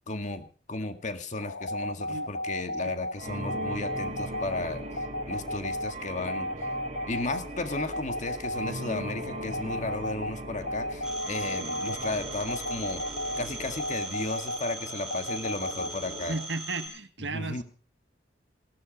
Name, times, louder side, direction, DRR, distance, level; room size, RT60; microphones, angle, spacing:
voice 1, 0.1-4.8 5.2-6.5 7.1-13.0 13.4-16.4 17.3-17.6, left 2 dB, 40° left, 8 dB, 1.9 m, -34 dB
sound 1, 1.4-16.5, left 1 dB, 75° left, 1.1 m, -35 dB
sound 2, 3.2-16.4, right 1 dB, 35° right, 3.0 m, -40 dB
Telephone, 11.0-16.9, right 2 dB, 5° right, 4.6 m, -40 dB
voice 2, 16.3-17.6, right 3 dB, 75° right, 9 dB, 1.8 m, -34 dB
17.5 x 12.5 x 5.3 m, 0.38 s
head